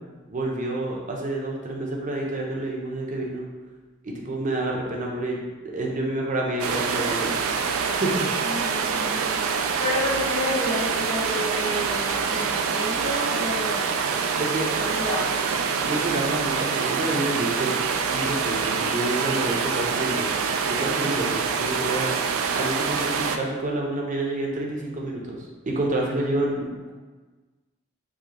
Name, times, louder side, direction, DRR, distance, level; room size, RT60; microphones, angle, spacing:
voice 1, 0.3-3.4 4.0-5.4 5.7-7.4 7.9-8.3 14.4-14.7 15.8-17.8 18.1-20.3 20.7-22.1 22.5-26.9, right 1 dB, 40° right, -1 dB, 0.6 m, -28 dB
sound 1, 6.6-23.4, right 5 dB, 80° right, 0.3 m, -25 dB
voice 2, 8.4-9.3 9.6-13.9 14.8-15.6, left 1 dB, 75° left, -7 dB, 1.4 m, -30 dB
4.8 x 2.2 x 2.9 m, 1.3 s
head